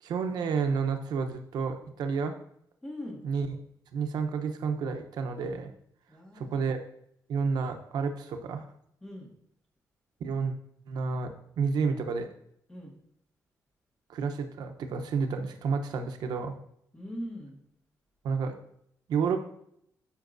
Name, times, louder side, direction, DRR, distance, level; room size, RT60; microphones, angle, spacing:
voice 1, 0.0-2.3 3.2-3.6 3.9-5.7 6.3-6.8 7.3-8.6 10.2-10.5 10.9-12.3 14.1-16.5 18.2-18.6 19.1-19.4, right 5 dB, 80° right, 6 dB, 0.8 m, -30 dB
voice 2, 2.8-3.2 6.1-6.6 9.0-9.3 12.7-12.9 16.9-17.6, equal, 10° left, -1 dB, 1.8 m, -41 dB
13.0 x 5.3 x 2.6 m, 0.72 s
wide cardioid pair, 165°, 7 cm